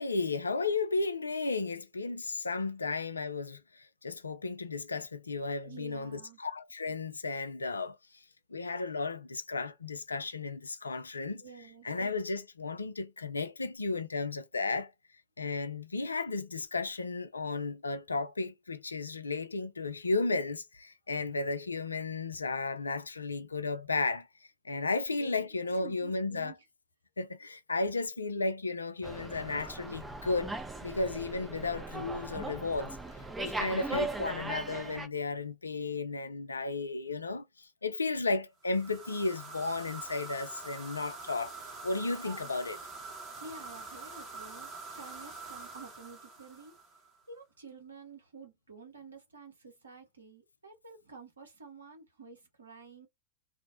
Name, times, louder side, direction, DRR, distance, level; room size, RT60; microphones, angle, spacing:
voice 1, 0.0-8.0 8.5-11.4 11.8-14.9 15.4-24.3 24.6-26.5 27.2-33.0 33.4-41.6 41.8-42.8, left 3 dB, 75° left, 0.3 m, -34 dB
voice 2, 5.6-6.4 11.4-11.9 25.2-25.5 25.7-26.6 42.2-42.5 43.4-46.7 47.3-53.1, right 4 dB, 75° right, 0.9 m, -50 dB
Slam, 29.0-35.1, right 2 dB, 10° right, 0.5 m, -38 dB
sound 1, 38.6-47.2, right 3 dB, 30° right, 1.0 m, -45 dB
2.5 x 2.0 x 2.6 m
figure-of-eight pair, 90°, 0 cm